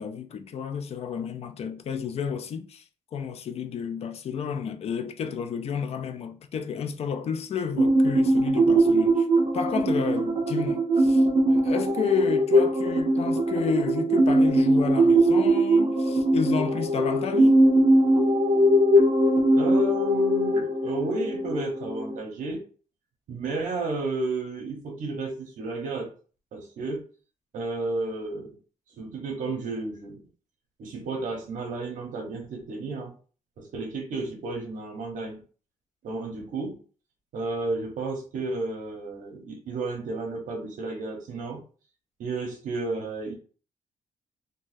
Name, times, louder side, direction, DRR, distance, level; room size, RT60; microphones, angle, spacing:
voice 1, 0.0-2.8 3.1-9.3 9.5-17.6, left 7 dB, 50° left, 0.4 m, -31 dB
sound 1, 7.8-22.2, right 1 dB, 50° right, 0.7 m, -21 dB
voice 2, 19.6-22.6 23.3-26.1 26.5-27.0 27.5-28.6 29.0-30.2 30.8-33.1 33.6-35.4 36.0-36.8 37.3-41.6 42.2-43.3, right 3 dB, 80° right, 0.9 m, -32 dB
3.8 x 2.2 x 2.6 m
cardioid pair, 130°, 13 cm